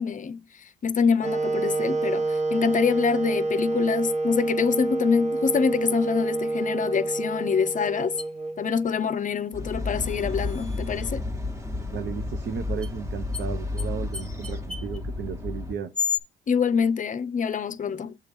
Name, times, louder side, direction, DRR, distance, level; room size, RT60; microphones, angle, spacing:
voice 1, 0.0-8.2 8.6-11.2 16.5-18.1, left 6 dB, 40° left, 0.6 m, -25 dB
Wind instrument woodwind instrument, 1.2-9.2, right 2 dB, 35° right, 1.2 m, -28 dB
sound 1, 8.2-8.3 10.0-11.1 12.8-12.9 13.3-13.5 13.8-13.9 14.1-15.0 15.9-16.2, left 6 dB, 5° left, 0.9 m, -32 dB
sound 2, 9.5-15.7, left 2 dB, 15° right, 1.2 m, -32 dB
voice 2, 11.9-15.9, right 7 dB, 60° right, 0.7 m, -34 dB
6.6 x 3.7 x 5.3 m
cardioid pair, 90°, 20 cm